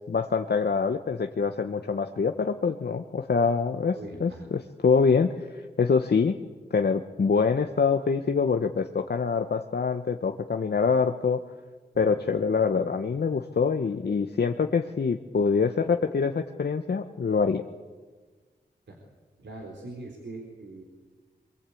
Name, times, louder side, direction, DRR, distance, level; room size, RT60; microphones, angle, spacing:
voice 1, 0.1-5.3 5.8-6.3 6.7-11.4 12.0-17.6, left 5 dB, 65° left, 6 dB, 1.1 m, -25 dB
voice 2, 3.9-4.5 12.1-12.2 18.9-19.0 19.4-20.8, right 2 dB, 80° right, 0 dB, 3.8 m, -41 dB
23.5 x 22.5 x 8.5 m, 1.4 s
cardioid pair, 55°, 18 cm